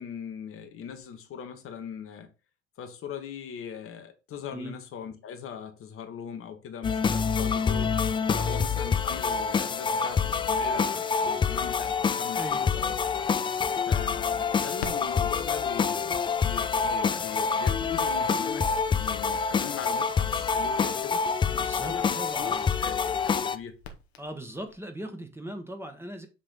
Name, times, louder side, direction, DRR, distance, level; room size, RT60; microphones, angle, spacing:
voice 1, 0.0-2.3 2.8-8.0 8.3-13.3 13.9-21.2 21.8-23.8, left 7 dB, 45° left, 1.0 m, -40 dB
sound 1, 6.8-23.6, left 5 dB, 15° left, 0.4 m, -27 dB
voice 2, 12.3-12.7 21.5-22.7 24.2-26.3, right 1 dB, 5° right, 1.1 m, -39 dB
Crackle, 13.6-24.8, left 6 dB, 75° left, 0.9 m, -49 dB
7.5 x 3.2 x 3.9 m
figure-of-eight pair, 60°, 32 cm